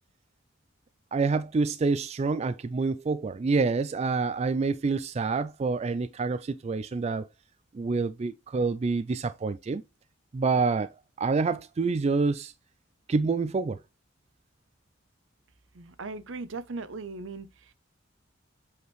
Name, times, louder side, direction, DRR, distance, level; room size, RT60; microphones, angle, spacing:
voice 1, 1.1-7.3 7.7-9.8 10.3-10.9 11.2-12.5 13.1-13.8, right 4 dB, 30° right, 0.3 m, -27 dB
voice 2, 15.7-17.7, right 3 dB, 70° right, 0.7 m, -38 dB
7.9 x 5.0 x 3.1 m
head